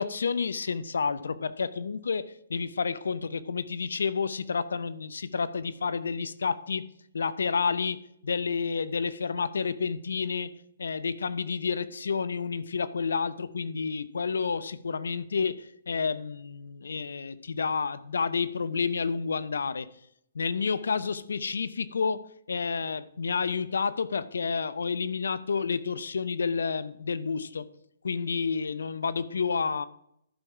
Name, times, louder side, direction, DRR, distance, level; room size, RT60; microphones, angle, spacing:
voice 1, 0.0-6.9 7.1-10.5 10.8-19.9 20.3-27.7 28.0-29.9, left 5 dB, 75° left, 0.6 m, -30 dB
11.5 x 5.3 x 4.7 m
hypercardioid pair, 135°, 0 cm